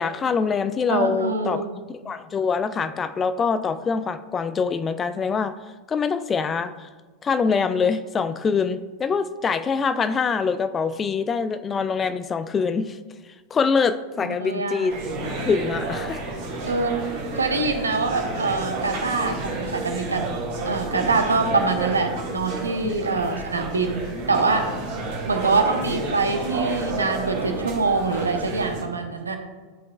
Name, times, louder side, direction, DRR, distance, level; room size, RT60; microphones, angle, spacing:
voice 1, 0.0-1.6 2.0-5.6 5.9-6.9 7.2-13.0 13.5-14.9 15.4-16.2 22.8-23.4, left 5 dB, 20° left, 12 dB, 0.3 m, -24 dB
voice 2, 0.9-1.8 14.2-15.0 16.6-20.2 20.7-24.7 25.3-29.4, right 3 dB, 75° right, 5 dB, 0.8 m, -24 dB
sound 1, 14.9-28.8, right 2 dB, 50° right, 1.8 m, -31 dB
12.0 x 5.1 x 2.3 m, 1.4 s
figure-of-eight pair, 90°, 0 cm